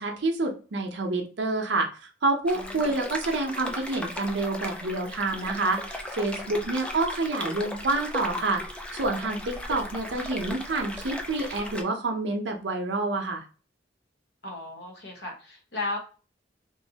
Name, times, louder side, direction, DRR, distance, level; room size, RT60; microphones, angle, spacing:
voice 1, 0.0-8.6 8.9-13.4, right 2 dB, 70° right, 3 dB, 0.7 m, -28 dB
voice 2, 2.5-3.0 6.5-6.8 14.4-16.0, left 2 dB, 60° left, 1 dB, 1.0 m, -36 dB
sound 1, 2.5-11.8, left 1 dB, 5° left, 0.3 m, -37 dB
3.1 x 2.6 x 2.7 m, 0.36 s
head